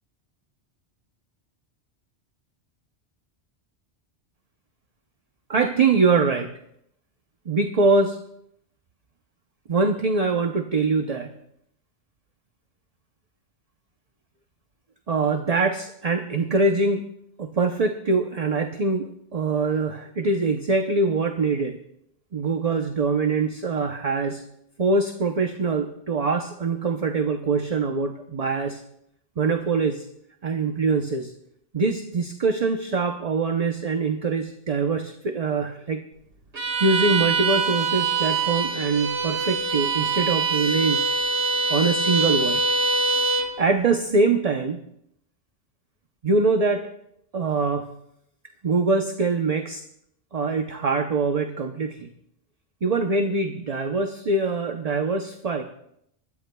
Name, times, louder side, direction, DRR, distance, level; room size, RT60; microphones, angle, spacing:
voice 1, 5.5-6.5 7.5-8.2 9.7-11.4 15.1-17.0 17.4-21.8 22.3-24.4 24.8-28.8 29.4-30.1 30.4-31.3 31.7-36.0 36.8-41.0 41.7-42.6 43.6-44.8 46.2-46.8 47.3-47.9 48.6-49.8 50.3-52.1 52.8-55.6, right 3 dB, 40° right, 5 dB, 0.8 m, -23 dB
Bowed string instrument, 36.5-43.6, right 3 dB, 70° right, 1.9 m, -24 dB
24.0 x 13.5 x 2.3 m, 0.74 s
omnidirectional pair, 1.2 m